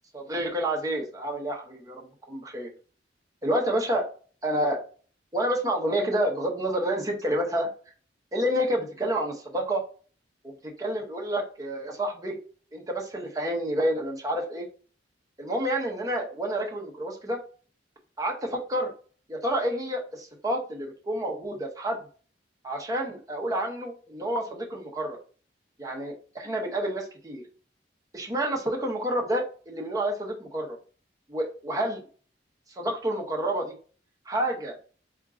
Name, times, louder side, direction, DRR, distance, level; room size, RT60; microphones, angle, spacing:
voice 1, 0.1-2.7 3.4-4.0 4.4-4.8 5.3-7.7 8.3-9.8 10.4-12.3 12.7-14.7 15.4-17.4 18.2-18.9 19.3-22.0 22.6-25.2 25.8-27.4 28.1-30.8 31.3-32.0 32.8-33.7 34.3-34.7, right 1 dB, 20° right, 0 dB, 0.8 m, -29 dB
4.4 x 2.4 x 3.6 m, 0.41 s
head